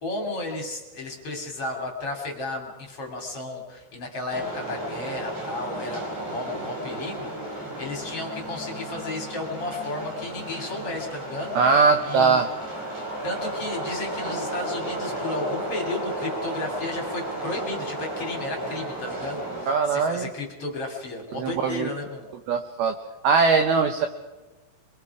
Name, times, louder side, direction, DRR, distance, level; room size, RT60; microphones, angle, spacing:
voice 1, 0.0-12.5 13.2-22.3, left 2 dB, 35° left, 1 dB, 2.9 m, -33 dB
sound 1, 4.3-19.6, right 1 dB, 45° right, 6.2 m, -33 dB
voice 2, 11.6-12.5 19.7-20.3 21.3-21.9 22.5-23.0 23.2-24.1, right 5 dB, 85° right, 6 dB, 2.2 m, -21 dB
27.5 x 23.0 x 4.9 m, 1.1 s
omnidirectional pair, 5.9 m